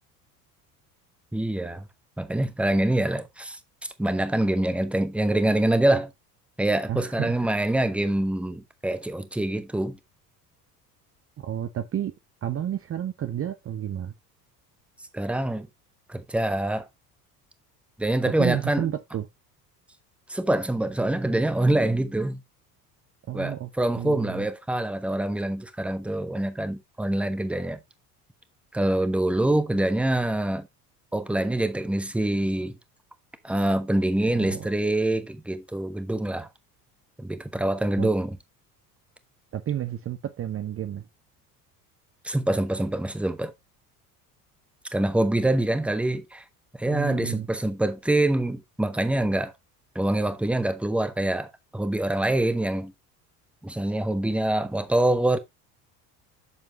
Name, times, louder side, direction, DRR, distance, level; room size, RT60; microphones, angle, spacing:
voice 1, 1.3-1.8 2.2-3.6 4.0-6.1 6.6-10.0 15.1-15.7 16.1-16.9 18.0-18.9 20.3-22.4 23.3-27.8 28.7-30.7 31.1-32.8 33.4-36.5 37.2-38.4 42.2-43.5 44.9-46.4 46.8-49.5 49.9-52.9 53.6-55.4, right 1 dB, 5° right, 1.1 m, -25 dB
voice 2, 6.9-7.4 11.4-12.1 12.4-14.1 18.4-19.3 23.3-23.7 24.0-24.5 34.3-34.7 38.0-38.1 39.5-41.1 46.9-47.5, right 10 dB, 30° right, 0.8 m, -31 dB
8.3 x 6.9 x 3.0 m
figure-of-eight pair, 65°, 47 cm